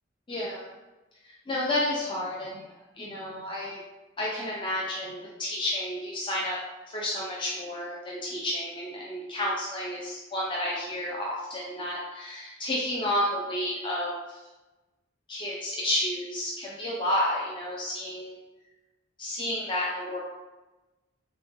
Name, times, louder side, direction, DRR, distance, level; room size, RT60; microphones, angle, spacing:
voice 1, 0.3-0.7 1.5-2.6 3.0-3.8 4.2-6.6 6.9-14.4 15.3-18.4 19.2-20.2, left 1 dB, 25° left, -4 dB, 0.5 m, -31 dB
3.8 x 3.3 x 3.5 m, 1.1 s
head